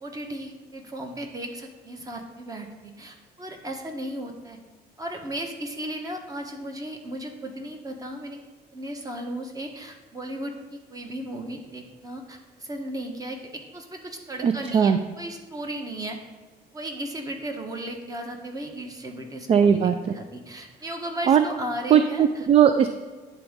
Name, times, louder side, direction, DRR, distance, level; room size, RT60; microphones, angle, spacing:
voice 1, 0.0-4.6 5.0-8.4 8.7-16.2 16.7-22.5, right 1 dB, 20° right, 3 dB, 1.1 m, -35 dB
voice 2, 14.4-15.0 19.5-19.9 21.3-21.5 21.9-22.9, right 8 dB, 35° right, 9 dB, 0.4 m, -18 dB
9.9 x 4.0 x 3.6 m, 1.3 s
cardioid pair, 110°, 17 cm